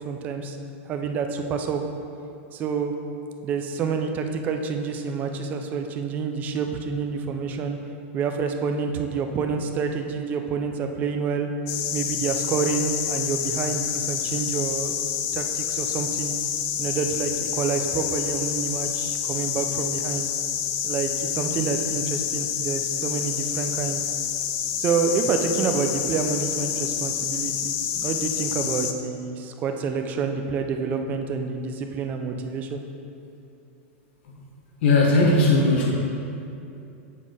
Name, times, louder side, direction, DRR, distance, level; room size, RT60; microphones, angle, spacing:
voice 1, 0.0-0.6 0.9-1.9 2.5-2.9 3.4-7.8 8.1-11.5 11.9-16.3 16.8-20.3 20.8-24.1 24.8-27.7 28.0-32.8, right 5 dB, 25° right, 5 dB, 0.4 m, -28 dB
sound 1, 11.7-28.9, left 9 dB, 35° left, 0.4 m, -28 dB
voice 2, 34.8-35.9, left 2 dB, 60° left, -1 dB, 1.2 m, -18 dB
7.3 x 4.1 x 4.8 m, 2.7 s
supercardioid pair, 160°, 7 cm